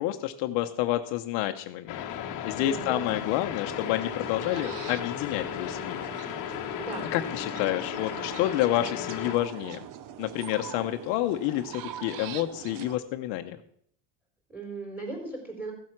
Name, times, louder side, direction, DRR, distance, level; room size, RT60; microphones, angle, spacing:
voice 1, 0.0-2.0 2.4-6.0 6.3-6.5 7.1-9.9 10.2-13.6, left 14 dB, 65° left, 7 dB, 1.0 m, -29 dB
sound 1, 1.9-9.4, left 10 dB, 40° left, 1.2 m, -35 dB
voice 2, 2.6-3.2 6.8-7.0 14.5-15.7, right 3 dB, 5° right, 1 dB, 4.2 m, -37 dB
sound 2, 3.6-13.0, right 11 dB, 40° right, 0.7 m, -43 dB
15.0 x 7.6 x 5.9 m, 0.66 s
cardioid pair, 155°, 48 cm